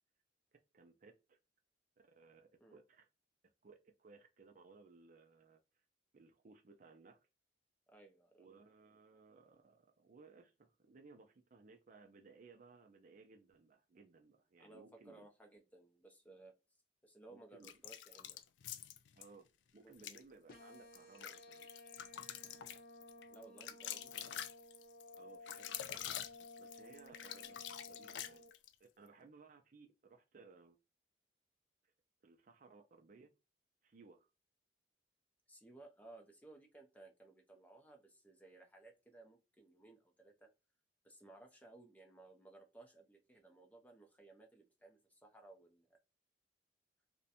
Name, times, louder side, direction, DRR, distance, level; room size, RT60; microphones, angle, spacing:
voice 1, 0.7-1.4 2.0-3.1 3.6-5.6 6.1-7.2 8.4-15.3 17.3-17.7 19.2-19.5 19.7-21.7 25.1-26.1 26.6-28.5 28.8-30.8 31.8-31.9 32.2-33.3 33.8-34.3, right 4 dB, 50° right, 0.4 m, -61 dB
voice 2, 7.9-8.5 14.6-16.5 17.0-18.4 19.8-20.2 23.3-24.1 27.3-27.6 35.5-40.5 41.0-46.0, right 2 dB, 10° left, 0.5 m, -60 dB
sound 1, 17.6-19.3 19.9-20.2 20.7-28.7, left 10 dB, 90° left, 0.3 m, -47 dB
sound 2, 20.5-28.5, left 1 dB, 55° left, 0.6 m, -56 dB
2.5 x 2.1 x 2.7 m
head